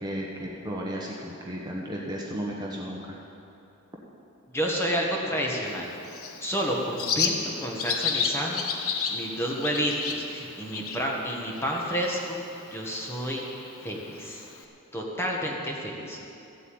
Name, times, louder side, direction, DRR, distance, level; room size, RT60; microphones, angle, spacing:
voice 1, 0.0-3.2, equal, 20° right, -3 dB, 1.2 m, -34 dB
voice 2, 4.5-5.9 6.4-13.4 13.8-14.5 14.9-16.2, equal, 10° left, -2 dB, 1.6 m, -30 dB
Bird, 5.7-14.6, left 5 dB, 85° left, 1.2 m, -33 dB
14.5 x 8.2 x 8.9 m, 2.7 s
head